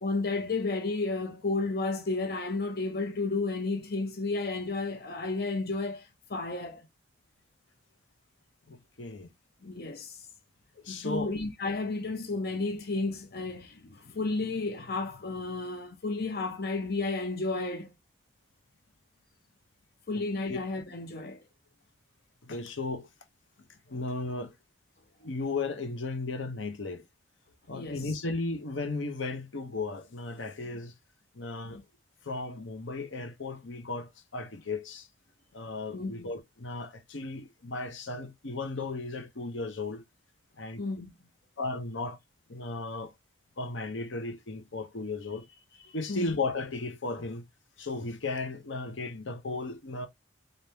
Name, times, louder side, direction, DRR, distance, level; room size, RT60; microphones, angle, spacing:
voice 1, 0.0-6.8 9.6-10.2 10.9-17.9 20.1-21.4 27.7-28.0 31.7-31.8 35.9-36.2 40.8-41.2 46.1-46.3, left 3 dB, 50° left, 0.7 m, -32 dB
voice 2, 8.7-9.3 10.8-11.4 20.1-20.2 20.5-20.6 22.4-23.1 23.9-24.5 25.2-27.0 27.7-30.9 31.3-31.8 32.2-35.1 35.5-40.0 40.6-40.8 41.6-42.2 42.5-43.1 43.6-45.5 45.9-47.4 47.8-50.1, left 3 dB, 80° left, 0.9 m, -35 dB
4.0 x 3.5 x 2.8 m
head